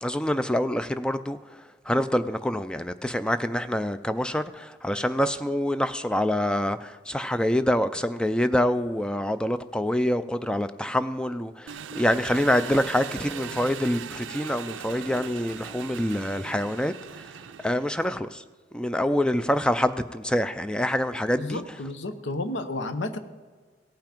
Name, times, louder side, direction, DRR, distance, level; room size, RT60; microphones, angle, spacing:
voice 1, 0.0-1.4 1.9-17.2 17.6-18.4 18.7-21.6, equal, 5° left, 0.3 m, -26 dB
Engine, 11.7-18.2, right 8 dB, 90° right, 0.5 m, -39 dB
voice 2, 21.4-23.2, left 2 dB, 75° left, 0.8 m, -31 dB
17.0 x 5.8 x 5.1 m
head